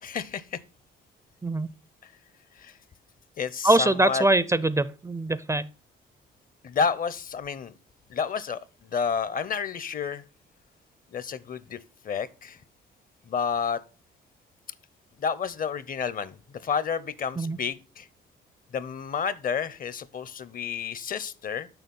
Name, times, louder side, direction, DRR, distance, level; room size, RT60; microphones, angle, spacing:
voice 1, 0.0-0.6 2.6-2.7 3.4-4.2 6.6-7.7 8.1-8.6 8.9-10.2 11.1-11.8 12.0-12.6 13.3-13.8 15.2-16.4 16.6-18.1 18.7-21.7, left 6 dB, 45° left, 0.7 m, -30 dB
voice 2, 3.6-5.7 17.4-17.6, right 2 dB, 15° right, 0.4 m, -23 dB
6.9 x 5.9 x 5.3 m
cardioid pair, 90°, 20 cm